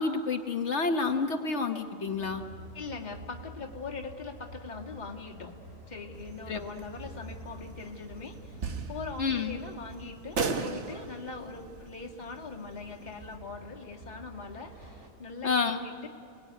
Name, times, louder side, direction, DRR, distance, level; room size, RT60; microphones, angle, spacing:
voice 1, 0.0-2.4 6.5-6.6 9.2-9.6 15.4-15.8, left 4 dB, 55° left, 6 dB, 1.4 m, -29 dB
Train, 2.0-10.5 12.4-15.1, right 1 dB, 90° right, 3.3 m, -49 dB
voice 2, 2.7-5.6 5.9-8.6 8.9-16.1, left 4 dB, 30° left, 0 dB, 2.0 m, -41 dB
sound 1, 6.1-13.4, right 4 dB, 55° right, 1.6 m, -39 dB
28.5 x 20.0 x 9.3 m, 2.4 s
omnidirectional pair, 1.5 m